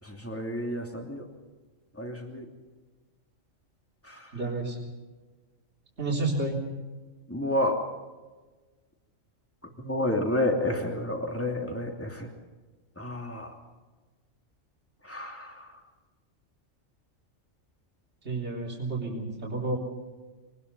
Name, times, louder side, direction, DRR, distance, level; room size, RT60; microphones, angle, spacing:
voice 1, 0.0-1.3 1.9-2.5 4.0-4.4 7.3-7.8 9.8-12.3 13.0-13.6 15.0-15.7, left 1 dB, 10° left, 2 dB, 2.9 m, -30 dB
voice 2, 4.3-4.8 6.0-6.6 18.2-19.8, right 2 dB, 55° right, -2 dB, 4.0 m, -30 dB
24.0 x 19.5 x 5.6 m, 1.3 s
omnidirectional pair, 1.3 m